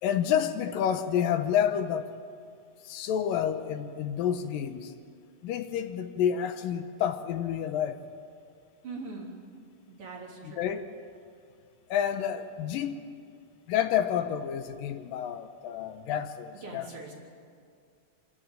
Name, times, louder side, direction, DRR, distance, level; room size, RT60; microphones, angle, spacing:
voice 1, 0.0-2.1 2.8-4.9 5.4-8.0 10.4-10.9 11.9-13.0 13.7-17.1, left 9 dB, 90° left, 9 dB, 2.6 m, -29 dB
voice 2, 8.8-9.3 9.9-10.6 16.6-17.1, right 3 dB, 40° right, -3 dB, 4.4 m, -41 dB
27.0 x 13.0 x 8.9 m, 2.3 s
omnidirectional pair, 3.9 m